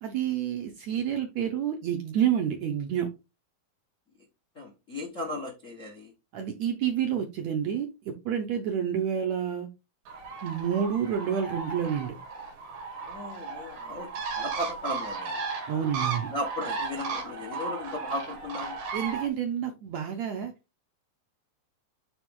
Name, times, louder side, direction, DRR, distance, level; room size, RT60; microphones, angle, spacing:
voice 1, 0.0-3.1 6.3-9.7 10.4-12.1 15.7-16.3 18.9-20.5, right 9 dB, 70° right, 4 dB, 1.7 m, -29 dB
voice 2, 4.5-6.1 13.1-15.4 16.3-18.8, left 1 dB, 50° left, 1 dB, 0.9 m, -36 dB
Bird, 10.1-19.3, right 4 dB, 90° right, 3.9 m, -35 dB
9.4 x 3.5 x 3.7 m, 0.26 s
omnidirectional pair, 4.1 m